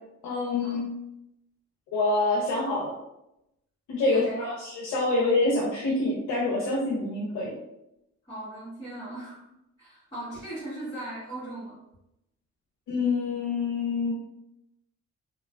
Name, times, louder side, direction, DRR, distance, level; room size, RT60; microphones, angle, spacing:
voice 1, 0.2-0.8 1.9-2.9 3.9-7.5 12.9-14.2, left 2 dB, 90° left, -5 dB, 0.6 m, -26 dB
voice 2, 8.3-9.4 9.8-11.8, right 1 dB, 15° left, -12 dB, 1.2 m, -38 dB
2.4 x 2.2 x 2.3 m, 0.85 s
cardioid pair, 90°, 30 cm